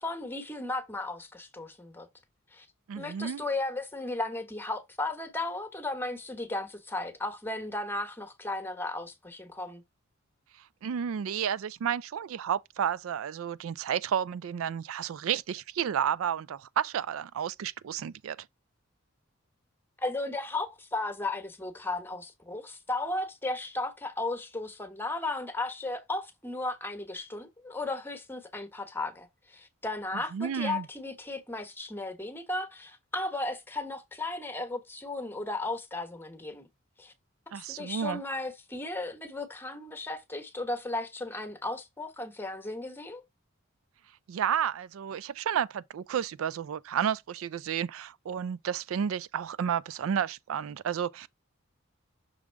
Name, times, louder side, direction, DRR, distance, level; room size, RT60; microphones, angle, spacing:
voice 1, 0.0-2.1 2.5-2.7 3.0-9.8 20.0-36.7 37.0-37.1 37.5-43.2, left 2 dB, 10° left, 1.1 m, -35 dB
voice 2, 2.9-3.4 10.8-18.5 30.3-30.8 37.5-38.2 44.3-51.3, right 8 dB, 75° right, 0.4 m, -31 dB
6.3 x 3.6 x 4.5 m
head